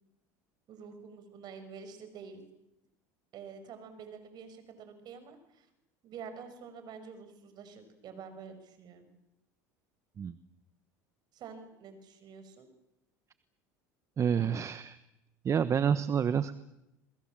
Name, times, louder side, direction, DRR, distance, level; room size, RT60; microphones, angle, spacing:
voice 1, 0.7-2.5 3.3-5.7 6.0-9.1 11.3-12.7, right 6 dB, 50° right, 9 dB, 5.9 m, -48 dB
voice 2, 14.2-15.0 15.4-16.6, right 7 dB, 35° right, 13 dB, 1.1 m, -28 dB
27.5 x 22.0 x 7.6 m, 0.88 s
supercardioid pair, 95°, 9 cm